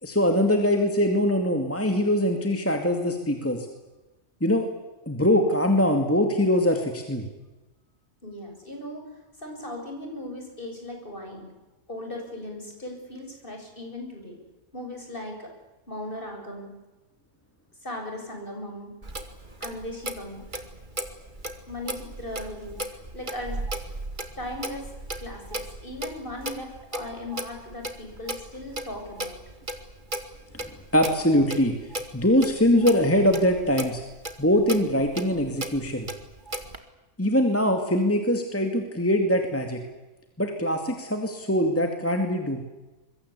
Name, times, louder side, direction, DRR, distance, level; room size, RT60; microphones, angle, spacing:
voice 1, 0.0-3.7 4.4-4.7 5.1-7.3 30.9-31.8 32.1-34.0 34.4-36.1 37.2-39.8 40.4-42.6, equal, 10° left, 4 dB, 2.4 m, -22 dB
voice 2, 8.2-9.1 9.4-11.5 11.9-14.4 14.7-15.5 15.9-16.7 17.8-18.9 19.6-20.4 21.7-22.8 23.1-23.6 24.4-24.9 25.2-29.4, left 1 dB, 40° left, 3 dB, 7.3 m, -37 dB
Clock, 19.0-36.8, right 1 dB, 40° right, 2.3 m, -37 dB
25.5 x 23.0 x 8.4 m, 1.1 s
omnidirectional pair, 1.3 m